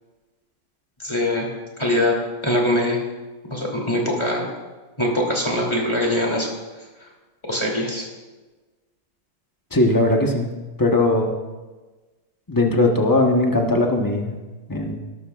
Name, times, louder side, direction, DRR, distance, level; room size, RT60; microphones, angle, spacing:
voice 1, 1.0-1.5 1.8-2.2 2.4-3.0 3.5-4.5 5.0-6.5 7.5-8.1, left 1 dB, 10° left, -2 dB, 2.6 m, -22 dB
voice 2, 9.7-10.5 10.8-11.3 12.5-14.3 14.7-15.0, left 2 dB, 30° left, 1 dB, 0.3 m, -19 dB
19.0 x 12.5 x 2.4 m, 1.2 s
omnidirectional pair, 2.4 m